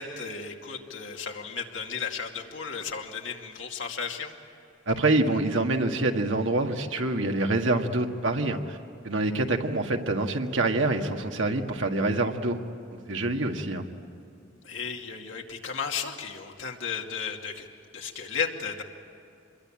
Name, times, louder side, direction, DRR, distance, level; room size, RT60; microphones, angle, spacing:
voice 1, 0.0-4.3 14.6-17.7 17.9-18.8, left 6 dB, 80° left, 2 dB, 2.5 m, -34 dB
voice 2, 4.9-8.8 9.0-12.6 13.1-13.8, right 2 dB, 80° right, 4 dB, 1.8 m, -26 dB
26.5 x 22.0 x 8.9 m, 2.7 s
head